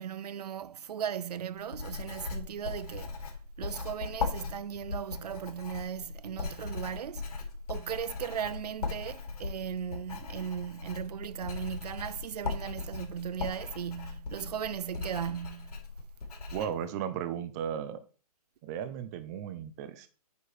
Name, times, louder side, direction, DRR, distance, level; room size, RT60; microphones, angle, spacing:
voice 1, 0.0-7.3 7.7-15.8, right 9 dB, 80° right, 0.5 m, -37 dB
Writing, 1.6-16.7, left 4 dB, 65° left, 3.8 m, -39 dB
voice 2, 16.5-18.0 18.6-20.1, right 9 dB, 25° right, 0.8 m, -35 dB
9.0 x 4.7 x 5.0 m
hypercardioid pair, 155°, 20 cm